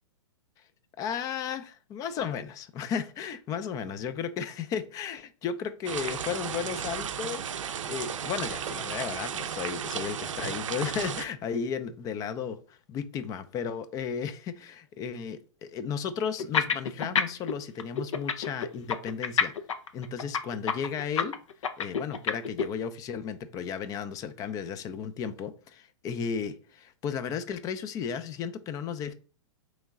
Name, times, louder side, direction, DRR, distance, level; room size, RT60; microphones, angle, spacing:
voice 1, 1.0-7.4 7.9-19.5 19.9-21.3 21.8-29.1, left 7 dB, 20° left, 12 dB, 0.3 m, -34 dB
sound 1, 5.9-11.3, right 8 dB, 85° right, 0.5 m, -34 dB
sound 2, 16.4-17.5 17.8-22.6, left 6 dB, 90° left, 0.5 m, -27 dB
3.6 x 3.1 x 3.5 m, 0.40 s
hypercardioid pair, 130°, 16 cm